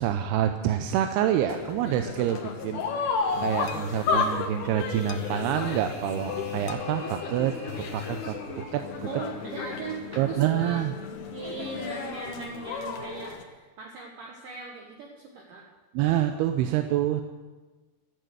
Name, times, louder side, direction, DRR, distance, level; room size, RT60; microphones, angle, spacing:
voice 1, 0.0-8.8 10.2-10.9 15.9-17.2, right 11 dB, 80° right, 6 dB, 2.5 m, -27 dB
sound 1, 1.5-13.4, left 5 dB, 65° left, 2.2 m, -33 dB
sound 2, 3.3-11.9, left 9 dB, 80° left, 2.6 m, -40 dB
sound 3, 4.4-8.8, right 1 dB, 50° right, 4.1 m, -49 dB
voice 2, 9.0-10.8 11.3-15.6, right 4 dB, 65° right, -1 dB, 2.5 m, -39 dB
13.5 x 8.7 x 7.9 m, 1.2 s
omnidirectional pair, 4.8 m